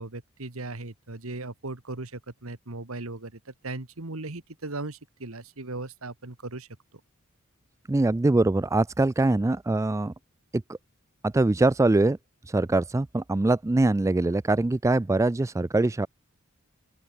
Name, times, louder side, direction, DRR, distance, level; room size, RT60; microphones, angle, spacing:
voice 1, 0.0-6.7, right 2 dB, 75° right, 1.8 m, -37 dB
voice 2, 7.9-10.1 10.5-10.6 11.2-12.2 12.5-16.1, right 2 dB, 15° right, 0.3 m, -23 dB
open air
head